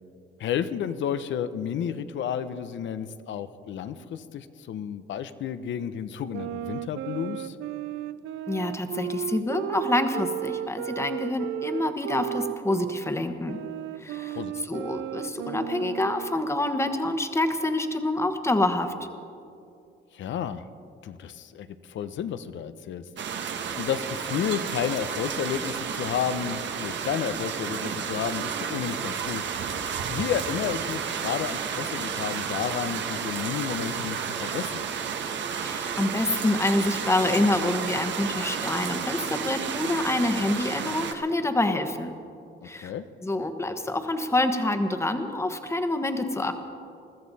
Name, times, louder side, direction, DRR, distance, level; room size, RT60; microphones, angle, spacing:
voice 1, 0.4-7.6 14.3-14.7 20.1-20.7 21.0-23.1 23.7-29.7 30.1-34.8 42.8-43.0, left 8 dB, 70° left, 12 dB, 0.8 m, -31 dB
sound 1, 6.3-13.0 13.5-16.4, right 13 dB, 85° right, 0.4 m, -34 dB
voice 2, 8.5-13.6 14.0-18.9 35.6-42.1 42.6-42.9 43.2-46.5, left 2 dB, 15° left, 7 dB, 1.2 m, -27 dB
sound 2, 23.2-41.1, right 7 dB, 65° right, 1.2 m, -32 dB
21.5 x 13.5 x 4.1 m, 2.6 s
cardioid pair, 90°, 20 cm